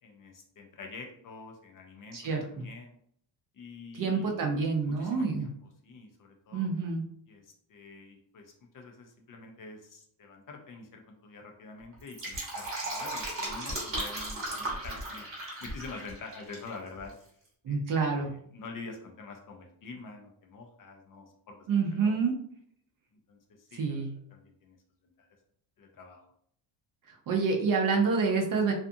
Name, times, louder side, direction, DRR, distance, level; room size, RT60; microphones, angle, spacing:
voice 1, 0.0-2.9 3.5-6.7 7.3-17.1 17.7-17.8 18.1-22.3 23.3-24.8 25.0-25.3 25.8-26.2, left 3 dB, 45° left, 2 dB, 0.5 m, -47 dB
voice 2, 2.1-2.7 3.9-5.5 6.5-7.0 17.6-18.3 21.7-22.3 23.8-24.1 27.3-28.7, right 4 dB, 45° right, 1 dB, 0.5 m, -27 dB
Fill (with liquid), 11.9-16.7 17.0-17.1, right 1 dB, 25° right, 0.9 m, -36 dB
2.5 x 2.4 x 2.6 m, 0.66 s
cardioid pair, 145°, 48 cm